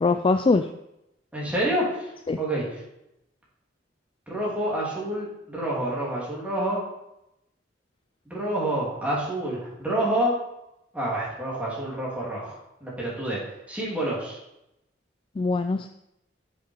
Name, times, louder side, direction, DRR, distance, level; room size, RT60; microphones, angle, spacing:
voice 1, 0.0-0.7 2.3-2.4 15.4-15.9, left 3 dB, 25° left, 8 dB, 0.3 m, -22 dB
voice 2, 1.3-2.1 2.4-2.6 4.3-6.8 8.3-10.3 10.9-12.5 12.8-13.4 13.7-14.4, right 1 dB, 5° right, -6 dB, 3.0 m, -28 dB
7.3 x 6.0 x 5.5 m, 0.84 s
head